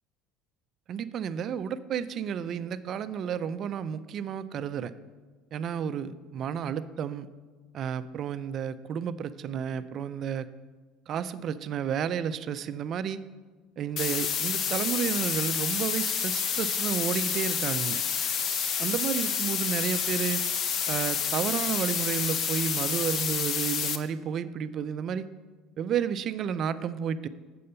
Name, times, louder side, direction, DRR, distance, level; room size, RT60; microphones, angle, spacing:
voice 1, 0.9-4.9 5.5-7.3 7.7-10.5 11.1-13.2 13.8-18.0 18.8-20.4 20.9-25.3 25.8-27.3, right 8 dB, 40° right, 13 dB, 0.4 m, -31 dB
sound 1, 14.0-24.0, left 7 dB, 40° left, 0.6 m, -29 dB
7.6 x 6.6 x 5.6 m, 1.3 s
cardioid pair, 140°, 0 cm